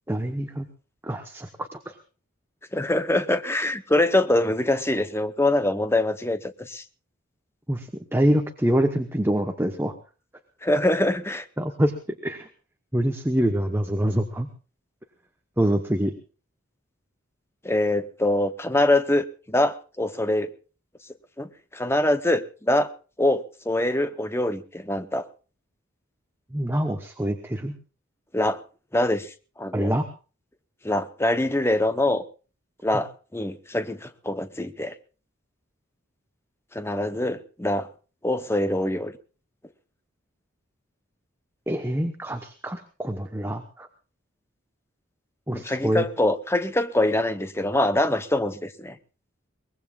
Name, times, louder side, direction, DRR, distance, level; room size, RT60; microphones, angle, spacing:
voice 1, 0.1-0.7 1.0-1.9 7.7-9.9 11.6-11.9 12.2-12.5 12.9-14.5 15.6-16.1 26.5-27.8 29.7-30.0 32.9-33.0 41.7-43.9 45.5-46.0, right 1 dB, 10° right, 6 dB, 1.0 m, -25 dB
voice 2, 2.7-6.8 10.6-11.5 17.6-20.5 21.4-22.9 23.2-25.3 28.3-28.6 28.9-29.9 30.8-32.2 32.8-34.9 36.7-37.9 38.2-39.1 45.5-49.0, left 1 dB, 10° left, 10 dB, 0.8 m, -24 dB
23.0 x 20.0 x 2.4 m, 0.36 s
head